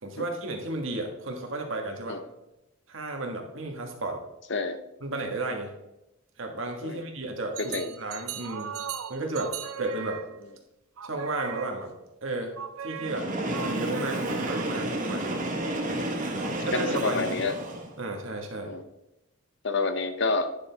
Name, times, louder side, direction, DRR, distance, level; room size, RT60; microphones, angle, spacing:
voice 1, 0.0-2.2 2.9-4.2 5.0-5.8 6.4-8.7 9.1-10.2 11.0-11.9 12.2-12.5 12.8-15.4 16.7-17.4 18.0-18.7, right 2 dB, 65° right, 2 dB, 1.6 m, -33 dB
sound 1, 7.5-10.6 11.0-12.0 12.6-15.0, right 8 dB, 80° right, 0.6 m, -39 dB
voice 2, 7.6-7.9 15.9-17.5 18.6-18.8 19.6-20.5, left 3 dB, 55° left, 9 dB, 0.7 m, -29 dB
Train, 13.0-18.0, right 1 dB, 35° right, 1.2 m, -31 dB
9.9 x 6.5 x 3.5 m, 0.91 s
head